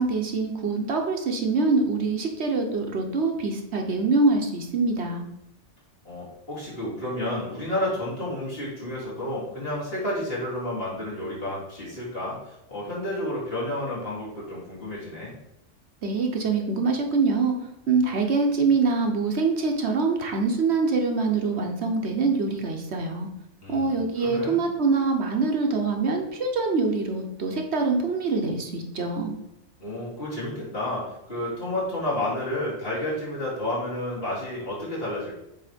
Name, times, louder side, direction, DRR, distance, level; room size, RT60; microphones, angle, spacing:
voice 1, 0.0-5.2 16.0-17.5 17.9-23.3 23.7-29.3, right 4 dB, 65° right, 3 dB, 1.1 m, -24 dB
voice 2, 6.0-15.3 23.6-24.6 29.8-35.3, left 1 dB, 50° left, -7 dB, 2.6 m, -31 dB
7.6 x 3.2 x 5.1 m, 0.84 s
omnidirectional pair, 1.3 m